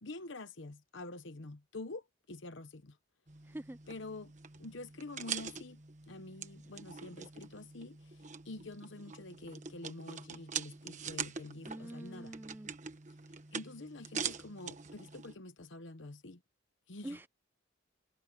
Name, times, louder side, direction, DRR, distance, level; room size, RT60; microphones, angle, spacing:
voice 1, 0.0-3.0 3.9-4.3 4.6-5.8 6.1-12.4 13.5-16.4 16.9-17.2, left 2 dB, 65° left, 1.0 m, -47 dB
sound 1, 3.3-15.3, right 6 dB, 35° right, 1.4 m, -44 dB
voice 2, 3.4-3.8 11.6-12.7 17.0-17.3, right 1 dB, 10° right, 0.3 m, -45 dB
head